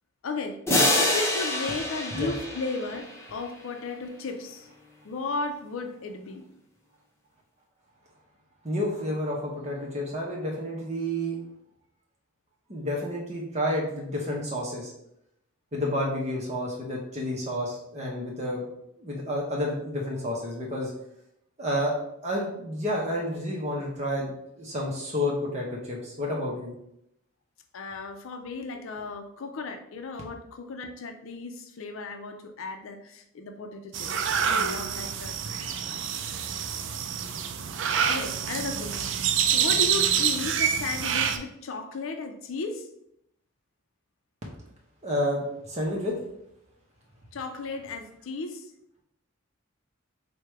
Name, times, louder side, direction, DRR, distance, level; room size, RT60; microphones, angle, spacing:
voice 1, 0.2-0.6 1.0-3.0 3.3-4.7 5.0-6.5 27.7-36.1 38.0-39.1 39.5-42.9 47.3-48.7, left 3 dB, 80° left, 5 dB, 0.5 m, -35 dB
sound 1, 0.7-3.4, left 1 dB, 15° left, 0.7 m, -26 dB
voice 2, 8.6-11.4 12.7-14.9 15.7-18.6 19.0-20.9 21.6-21.9 22.2-26.7 45.0-46.1, left 1 dB, 35° right, -2 dB, 0.7 m, -30 dB
sound 2, 33.9-41.4, right 8 dB, 60° right, 0.4 m, -27 dB
4.6 x 2.2 x 4.6 m, 0.78 s
head